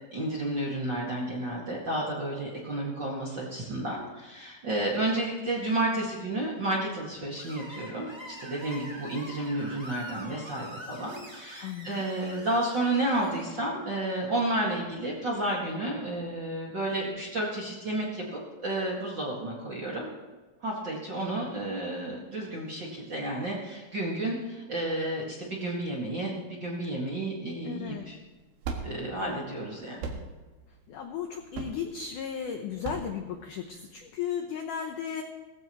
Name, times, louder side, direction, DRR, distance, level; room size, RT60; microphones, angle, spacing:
voice 1, 0.1-20.1 20.6-28.2 28.8-30.1, right 1 dB, 40° right, -4 dB, 1.7 m, -31 dB
Screech, 7.4-13.4, equal, 10° right, 1.3 m, -44 dB
voice 2, 11.6-12.0 27.6-28.1 30.9-35.2, left 8 dB, 80° left, 4 dB, 1.8 m, -35 dB
sound 1, 27.8-34.0, right 4 dB, 70° right, 3.3 m, -40 dB
18.5 x 15.0 x 3.1 m, 1.3 s
omnidirectional pair, 4.8 m